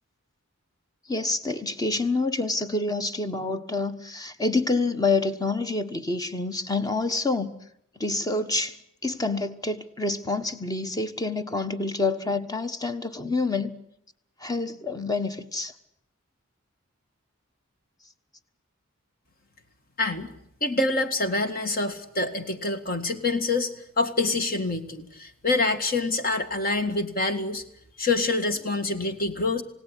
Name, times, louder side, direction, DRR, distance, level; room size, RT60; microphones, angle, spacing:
voice 1, 1.1-7.5 8.0-13.7 14.4-15.7, left 3 dB, 20° left, 1.3 m, -27 dB
voice 2, 20.0-20.3 20.6-27.6 28.0-29.6, left 3 dB, 45° left, 1.9 m, -26 dB
28.0 x 17.5 x 10.0 m
head